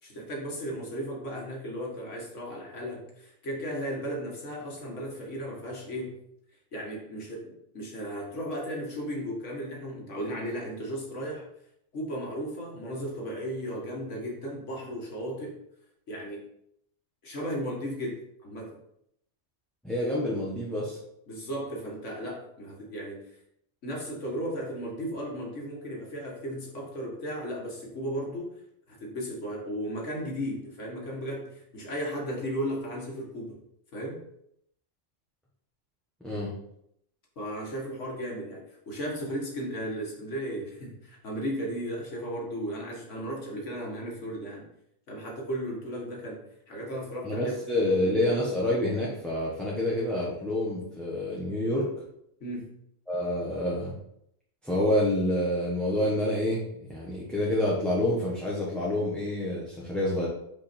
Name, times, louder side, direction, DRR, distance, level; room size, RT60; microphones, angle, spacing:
voice 1, 0.0-6.2 6.7-11.5 11.9-15.6 16.1-16.5 17.2-18.8 21.3-23.3 23.8-28.6 28.9-33.6 33.9-34.2 37.4-44.7 45.1-47.6 48.0-48.3 52.4-52.7, equal, 70° left, -1 dB, 2.0 m, -35 dB
voice 2, 19.8-21.0 36.2-36.5 47.2-51.9 53.1-53.9 54.6-60.3, left 1 dB, ahead, -7 dB, 1.3 m, -28 dB
5.5 x 5.0 x 4.4 m, 0.74 s
omnidirectional pair, 1.3 m